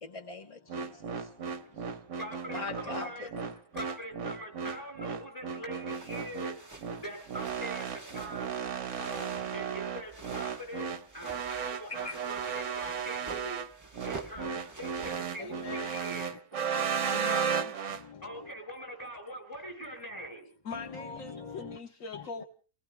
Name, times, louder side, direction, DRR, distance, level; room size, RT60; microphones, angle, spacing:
voice 1, 0.0-1.5 1.8-1.9 2.5-3.5 12.0-12.2 14.4-14.6 15.4-15.5 16.3-16.4 16.7-17.2 17.9-18.2 20.7-21.8 22.1-22.4, left 4 dB, 30° left, 0.8 m, -43 dB
sound 1, 0.7-18.0, right 7 dB, 65° right, 1.2 m, -35 dB
voice 2, 2.1-3.3 3.7-8.5 9.0-10.9 11.1-13.6 14.0-16.3 17.2-17.4 18.2-20.5, equal, 15° left, 7.1 m, -43 dB
sound 2, 5.9-16.1, right 3 dB, 15° right, 0.9 m, -49 dB
voice 3, 15.4-16.0 17.0-17.7 20.6-22.4, left 5 dB, 75° left, 1.4 m, -42 dB
30.0 x 19.0 x 2.2 m
omnidirectional pair, 1.4 m